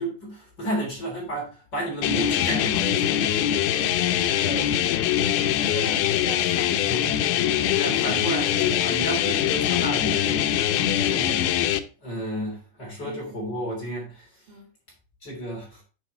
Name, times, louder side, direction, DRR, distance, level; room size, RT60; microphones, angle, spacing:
voice 1, 0.0-3.3 6.9-7.1 7.7-11.4 12.0-14.3 15.2-15.8, right 1 dB, 30° left, 3.7 m, -32 dB
sound 1, 2.0-11.8, left 11 dB, 85° left, 2.6 m, -23 dB
voice 2, 3.6-4.9 5.3-7.9 13.1-13.4 14.5-14.7, right 5 dB, 60° right, 6.1 m, -41 dB
9.9 x 6.8 x 3.2 m
omnidirectional pair, 4.4 m